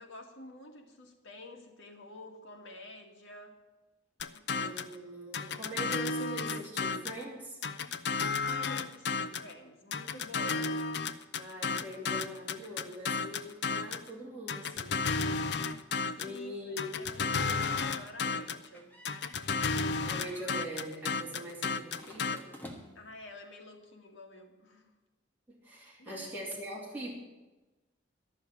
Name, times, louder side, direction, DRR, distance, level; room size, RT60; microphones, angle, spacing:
voice 1, 0.0-3.5 4.3-4.4 8.4-10.9 16.2-19.0 23.0-24.9 26.0-26.3, left 2 dB, 80° left, 2 dB, 2.0 m, -48 dB
sound 1, 4.2-4.9 5.3-7.2 7.6-9.5 9.9-14.1 14.5-16.4 16.8-18.7 19.0-22.4, left 4 dB, 60° left, 0.5 m, -33 dB
voice 2, 4.5-7.6 11.3-15.3 16.2-16.9 20.0-22.5 25.5-27.1, right 1 dB, 10° right, -6 dB, 3.1 m, -42 dB
sound 2, 18.7-19.9 20.2-20.6 22.0-23.2, equal, 10° left, 1.3 m, -50 dB
12.5 x 6.4 x 9.5 m, 1.1 s
head